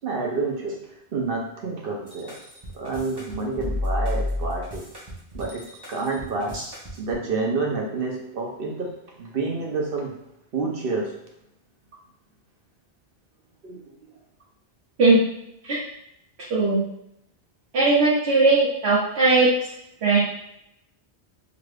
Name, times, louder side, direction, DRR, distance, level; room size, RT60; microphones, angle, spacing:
voice 1, 0.0-2.4 2.7-4.9 5.3-6.6 7.0-10.1 10.5-11.2 13.6-14.0, right 3 dB, 60° right, 0 dB, 0.9 m, -29 dB
sound 1, 2.1-7.2, left 2 dB, 25° right, 0.8 m, -31 dB
voice 2, 17.7-19.6 20.0-20.2, right 3 dB, 85° right, -8 dB, 1.0 m, -18 dB
2.8 x 2.5 x 3.2 m, 0.81 s
omnidirectional pair, 1.1 m